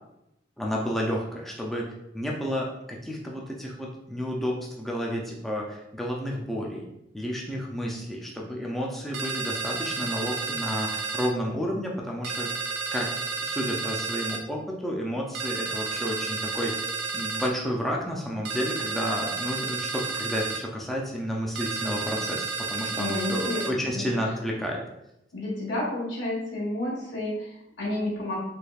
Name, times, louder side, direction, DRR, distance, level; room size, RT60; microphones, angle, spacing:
voice 1, 0.6-6.9 7.1-12.5 12.9-13.1 13.4-16.9 17.1-24.8, equal, ahead, -2 dB, 0.4 m, -31 dB
sound 1, 9.1-11.3 12.2-14.4 15.3-17.5 18.5-20.6 21.6-23.7, right 4 dB, 75° right, 0.4 m, -31 dB
voice 2, 22.9-24.0 25.3-28.4, left 1 dB, 85° left, -4 dB, 1.3 m, -31 dB
3.3 x 3.2 x 2.3 m, 0.85 s
head